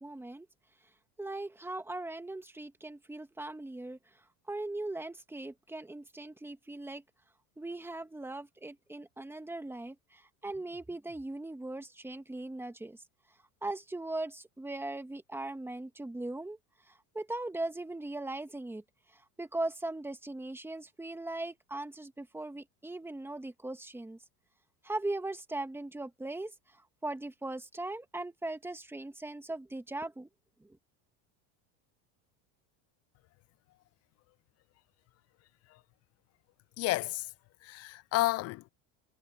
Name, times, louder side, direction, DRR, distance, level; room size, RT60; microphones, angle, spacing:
voice 1, 0.0-0.5 1.2-4.0 4.5-7.0 7.6-13.0 13.6-16.6 16.9-18.8 19.1-24.2 24.8-30.3 30.6-30.8, right 2 dB, 5° right, 2.0 m, -39 dB
voice 2, 36.8-37.3 37.6-38.7, left 18 dB, 40° left, 0.4 m, -31 dB
supercardioid pair, 120°, 39 cm